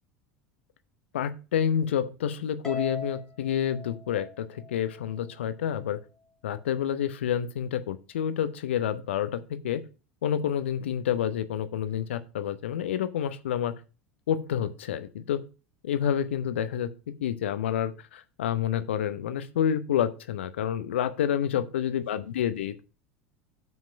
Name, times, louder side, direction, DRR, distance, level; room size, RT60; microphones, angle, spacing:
voice 1, 1.1-6.0 6.4-9.8 10.2-13.7 14.3-15.4 15.8-22.8, left 9 dB, 65° left, 13 dB, 0.7 m, -29 dB
Harp, 2.6-5.1, left 3 dB, 10° left, 2.0 m, -39 dB
7.4 x 5.9 x 5.1 m, 0.32 s
figure-of-eight pair, 75°, 7 cm